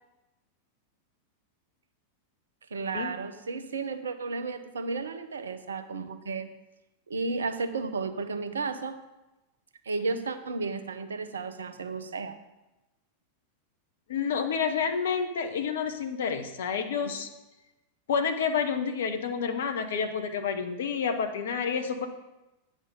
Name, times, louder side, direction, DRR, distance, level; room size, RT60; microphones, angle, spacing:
voice 1, 2.7-6.5 7.1-9.0 9.9-12.4 17.0-17.1, right 4 dB, 70° right, 10 dB, 0.7 m, -33 dB
voice 2, 14.1-17.3 18.1-22.1, left 6 dB, 60° left, 7 dB, 0.9 m, -29 dB
8.9 x 5.3 x 5.2 m, 1.0 s
figure-of-eight pair, 90°, 0 cm